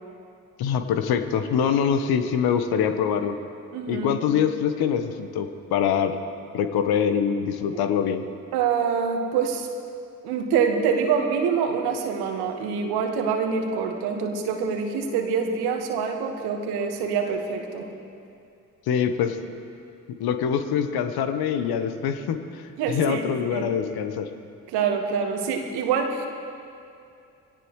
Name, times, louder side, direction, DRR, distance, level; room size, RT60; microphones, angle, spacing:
voice 1, 0.6-3.3 3.9-6.1 6.5-8.2 18.9-19.4 20.2-22.4 22.9-24.3, left 7 dB, 65° left, 8 dB, 1.2 m, -24 dB
voice 2, 3.7-4.1 8.5-9.7 10.2-17.9 22.8-23.2 23.5-23.7 24.7-26.3, right 6 dB, 70° right, 4 dB, 1.7 m, -25 dB
23.5 x 17.5 x 3.2 m, 2.5 s
figure-of-eight pair, 40°, 40 cm